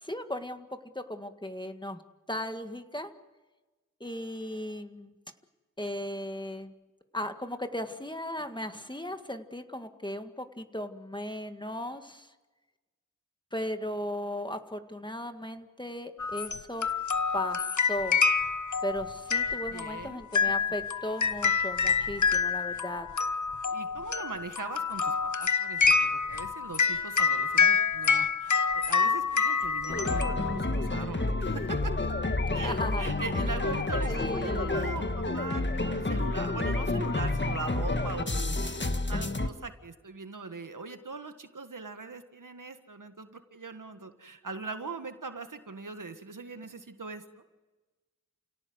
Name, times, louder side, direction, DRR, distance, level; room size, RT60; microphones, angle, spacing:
voice 1, 0.0-0.7 0.9-2.0 2.3-3.1 4.0-5.2 5.8-6.7 7.1-12.3 13.5-16.9 17.3-18.2 18.8-23.1 32.5-33.1 33.3-33.5 34.1-34.8, left 1 dB, 15° left, 7 dB, 1.8 m, -36 dB
sound 1, 16.2-30.9, left 5 dB, 65° left, 1.0 m, -27 dB
voice 2, 19.7-20.5 23.7-31.9 32.5-47.4, right 4 dB, 80° right, 8 dB, 1.7 m, -41 dB
sound 2, 29.9-39.5, left 2 dB, 35° left, 1.5 m, -29 dB
29.5 x 17.5 x 7.9 m, 1.2 s
wide cardioid pair, 45°, 32 cm